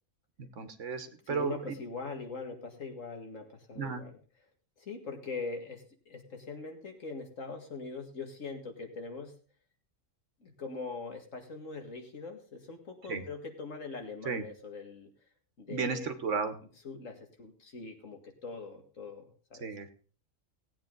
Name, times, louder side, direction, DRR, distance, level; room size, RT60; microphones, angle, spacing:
voice 1, 0.4-1.7 3.7-4.0 13.1-13.2 14.2-14.4 15.7-16.5 19.6-19.9, right 5 dB, 70° right, 10 dB, 1.5 m, -34 dB
voice 2, 1.3-4.2 4.8-9.3 10.4-15.1 15.6-16.1 16.8-19.7, left 4 dB, 80° left, 4 dB, 2.3 m, -42 dB
17.5 x 8.8 x 3.9 m, 0.40 s
omnidirectional pair, 1.3 m